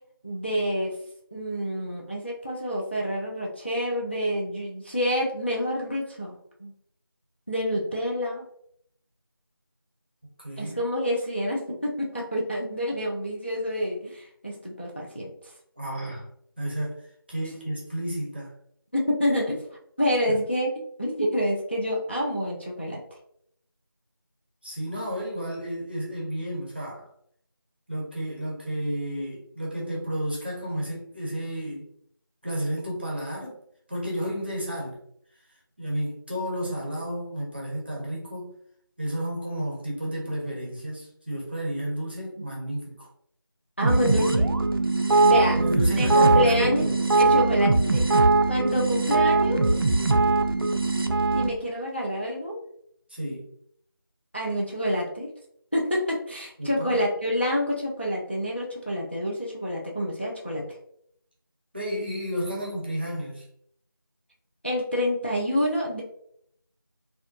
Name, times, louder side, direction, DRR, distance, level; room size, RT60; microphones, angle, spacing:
voice 1, 0.2-0.9 1.3-6.7 7.5-8.5 10.6-15.3 18.9-19.6 20.0-23.0 43.8-44.5 45.2-46.9 47.2-49.7 51.3-52.6 54.3-55.3 55.7-60.6 64.6-66.0, equal, 30° left, -2 dB, 0.3 m, -28 dB
voice 2, 10.4-10.8 15.8-16.3 16.6-17.0 17.3-18.5 20.3-20.4 24.6-27.1 27.9-31.9 32.4-33.6 33.9-35.0 35.8-38.5 39.0-43.1 45.5-46.9 53.1-53.5 56.6-57.0 61.7-63.5, equal, 25° right, -4 dB, 0.6 m, -32 dB
sound 1, 43.8-51.5, right 3 dB, 70° right, 0.4 m, -21 dB
2.6 x 2.1 x 2.3 m, 0.68 s
figure-of-eight pair, 170°, 12 cm